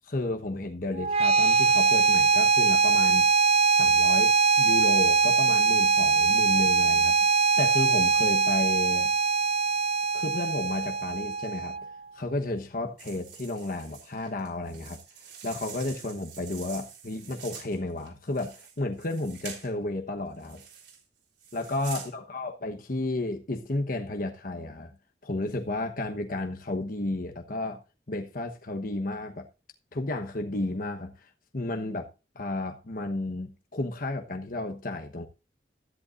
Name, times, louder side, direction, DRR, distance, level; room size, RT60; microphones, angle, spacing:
voice 1, 0.1-3.3 3.7-7.3 7.6-9.1 10.1-11.8 12.1-15.0 15.4-20.6 21.5-24.9 25.2-27.8 28.1-29.5 29.9-32.1 32.3-35.3, left 2 dB, 50° left, 1.1 m, -32 dB
sound 1, 1.0-12.0, right 4 dB, 35° right, 0.5 m, -22 dB
sound 2, 13.0-19.7 20.4-21.0 21.4-22.1, right 7 dB, 85° right, 3.7 m, -45 dB
13.5 x 11.0 x 2.5 m
head